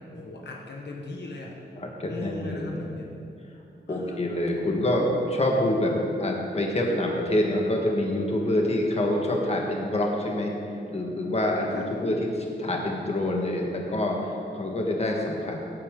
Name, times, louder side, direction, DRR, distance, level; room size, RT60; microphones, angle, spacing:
voice 1, 0.1-1.5 2.1-3.1 3.9-4.3 4.6-4.8 11.7-11.9, left 2 dB, 65° left, -1 dB, 1.2 m, -39 dB
voice 2, 1.8-2.8 3.9-10.5 10.9-15.6, left 1 dB, 35° left, 0 dB, 1.6 m, -26 dB
17.0 x 8.7 x 3.8 m, 2.6 s
wide cardioid pair, 130°, 19 cm